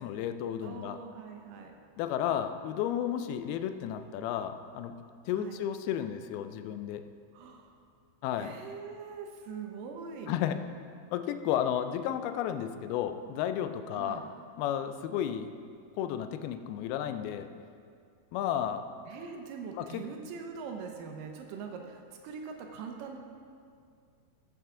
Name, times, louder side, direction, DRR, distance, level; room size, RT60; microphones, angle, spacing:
voice 1, 0.0-1.0 2.0-4.9 5.3-7.0 8.2-8.5 10.3-10.6 11.1-14.3 14.6-15.5 15.9-17.5 18.3-18.9 19.8-20.0, left 10 dB, 85° left, 9 dB, 2.3 m, -32 dB
voice 2, 0.6-1.8 5.3-5.6 7.3-7.7 8.4-10.3 13.9-14.2 19.1-23.2, right 5 dB, 80° right, 3 dB, 2.0 m, -42 dB
13.5 x 7.9 x 3.7 m, 2.3 s
omnidirectional pair, 4.8 m